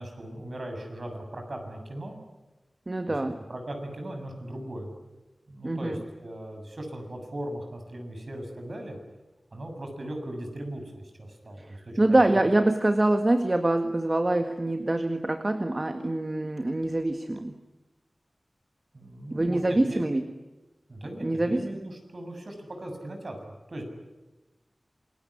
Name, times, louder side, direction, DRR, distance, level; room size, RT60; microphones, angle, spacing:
voice 1, 0.0-2.2 3.1-3.2 3.5-4.9 5.5-9.0 9.5-12.4 18.9-20.0 20.9-23.8, right 1 dB, 60° right, 4 dB, 7.2 m, -38 dB
voice 2, 2.9-3.4 5.6-6.0 11.6-17.5 19.3-20.2 21.2-21.7, right 2 dB, 35° right, 6 dB, 1.8 m, -25 dB
27.5 x 21.5 x 10.0 m, 1.1 s
wide cardioid pair, 65°, 0 cm